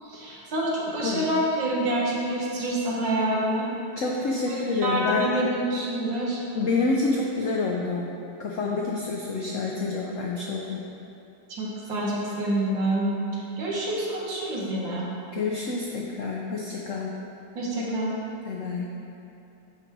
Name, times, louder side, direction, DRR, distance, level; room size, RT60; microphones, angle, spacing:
voice 1, 0.0-3.7 4.5-6.4 11.5-15.1 17.6-18.2, right 1 dB, 70° right, -4 dB, 2.0 m, -27 dB
voice 2, 4.0-5.3 6.5-8.1 8.4-10.8 15.3-17.1 18.5-18.9, left 3 dB, 85° left, -2 dB, 0.6 m, -28 dB
10.5 x 4.0 x 4.6 m, 2.8 s
omnidirectional pair, 2.2 m